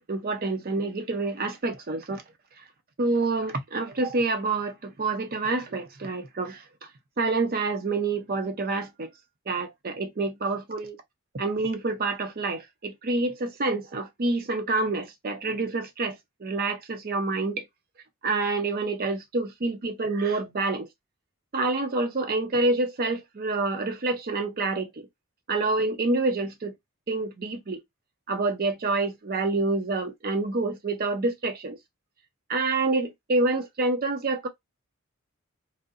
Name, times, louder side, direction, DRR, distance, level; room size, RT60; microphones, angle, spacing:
voice 1, 0.1-2.2 3.0-6.9 7.2-9.1 9.5-11.0 11.3-17.7 18.2-20.9 21.5-25.1 25.5-26.7 27.1-27.8 28.3-31.8 32.5-34.5, right 3 dB, 45° right, 0.6 m, -27 dB
2.6 x 2.0 x 2.4 m
head